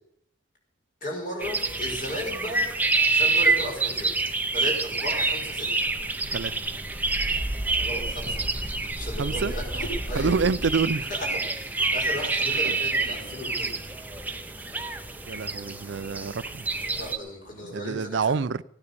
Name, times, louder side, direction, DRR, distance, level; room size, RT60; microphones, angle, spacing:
voice 1, 1.0-2.6 3.1-4.1 4.5-5.9 7.8-8.4 9.0-10.3 11.1-13.7 16.9-18.2, equal, 45° left, 5.2 m, -35 dB
sound 1, 1.4-17.2, right 3 dB, 10° right, 0.8 m, -27 dB
sound 2, 6.3-17.6, left 1 dB, 10° left, 3.9 m, -52 dB
voice 2, 9.2-9.5 10.1-11.1 12.7-12.8 15.3-16.6 17.6-18.6, right 5 dB, 60° right, 0.5 m, -27 dB
16.0 x 9.6 x 6.9 m
head